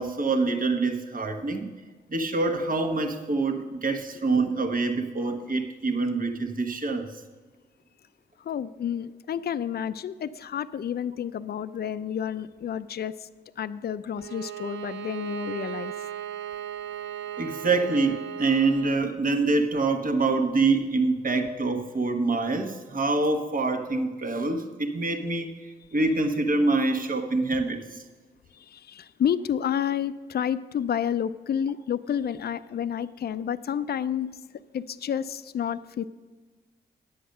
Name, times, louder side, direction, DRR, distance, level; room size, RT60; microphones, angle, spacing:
voice 1, 0.0-1.7 2.1-7.1 17.4-25.5 25.9-27.8, right 3 dB, 45° right, 5 dB, 1.2 m, -25 dB
voice 2, 8.5-13.1 13.6-15.9 28.7-34.3 34.7-36.0, left 9 dB, 55° left, 14 dB, 0.5 m, -30 dB
Bowed string instrument, 14.2-19.1, right 11 dB, 65° right, 0.5 m, -37 dB
10.0 x 7.9 x 6.5 m, 1.3 s
supercardioid pair, 45°, 20 cm